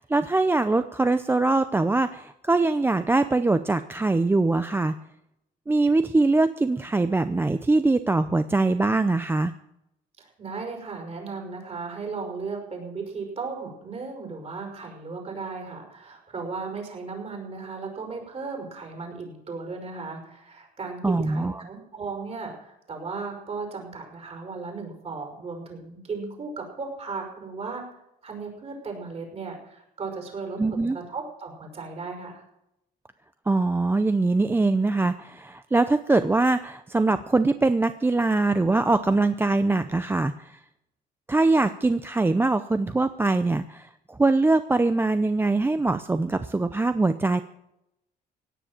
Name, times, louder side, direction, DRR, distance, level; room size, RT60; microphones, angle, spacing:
voice 1, 0.0-5.0 5.7-9.5 21.0-21.5 30.6-31.0 33.5-40.6 41.3-47.4, right 3 dB, 15° right, 11 dB, 0.6 m, -22 dB
voice 2, 10.2-27.8 28.2-32.4, right 4 dB, 35° right, 3 dB, 5.6 m, -36 dB
17.0 x 9.9 x 7.4 m, 0.85 s
cardioid pair, 110°, 17 cm